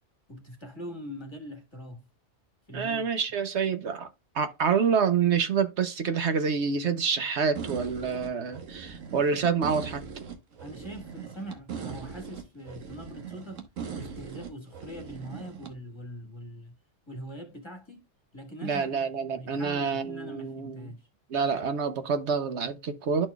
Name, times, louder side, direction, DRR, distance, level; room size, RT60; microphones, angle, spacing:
voice 1, 0.3-2.1 2.7-3.1 10.6-13.6 14.0-16.7 17.1-18.0 18.3-18.9 19.3-21.1, equal, 20° left, 1.3 m, -42 dB
voice 2, 2.7-4.1 4.3-10.0 18.6-20.9 21.3-23.3, right 6 dB, 65° right, 1.0 m, -27 dB
sound 1, 7.5-15.7, right 6 dB, 85° right, 1.5 m, -40 dB
12.0 x 4.3 x 2.2 m
omnidirectional pair, 1.3 m